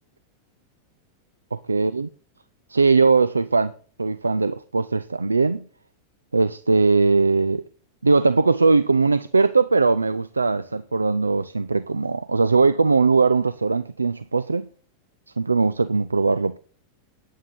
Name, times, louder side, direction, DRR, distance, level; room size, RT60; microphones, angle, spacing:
voice 1, 1.7-2.1 2.7-3.7 4.0-5.7 6.3-7.6 8.0-14.7 15.4-16.6, right 4 dB, 80° right, 0.4 m, -20 dB
9.6 x 8.9 x 5.6 m
figure-of-eight pair, 90°, 0 cm